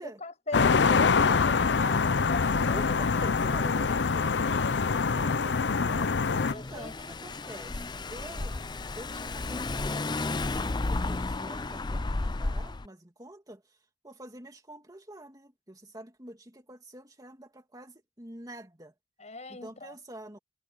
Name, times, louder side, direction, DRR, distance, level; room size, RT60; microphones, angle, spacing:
voice 1, 0.0-3.4 4.2-4.8 6.4-7.1 19.2-19.9, left 2 dB, 40° left, 7.2 m, -40 dB
sound 1, 0.5-6.5, left 5 dB, 85° left, 0.6 m, -25 dB
voice 2, 1.7-2.1 2.6-4.3 4.8-8.6 8.9-13.8 14.0-18.9 19.5-20.4, right 1 dB, 20° right, 2.5 m, -47 dB
Car / Engine, 5.9-12.9, left 2 dB, 25° left, 0.5 m, -33 dB
head